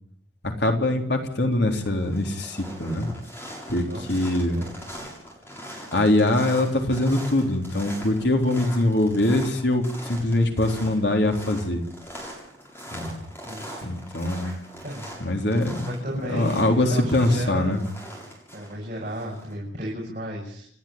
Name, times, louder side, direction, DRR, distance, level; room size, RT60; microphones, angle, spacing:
voice 1, 0.4-3.1 3.7-4.6 5.9-11.8 12.9-13.1 13.8-14.6 15.2-15.9 16.3-17.8, left 1 dB, 65° left, 3 dB, 3.8 m, -23 dB
sound 1, 1.0-1.3 1.7-19.5, equal, 15° left, 7.4 m, -41 dB
voice 2, 3.9-4.3 4.6-4.7 13.5-13.8 14.8-15.1 15.9-17.8 18.5-20.7, equal, 40° right, -3 dB, 6.9 m, -34 dB
28.5 x 12.5 x 8.9 m, 0.64 s
head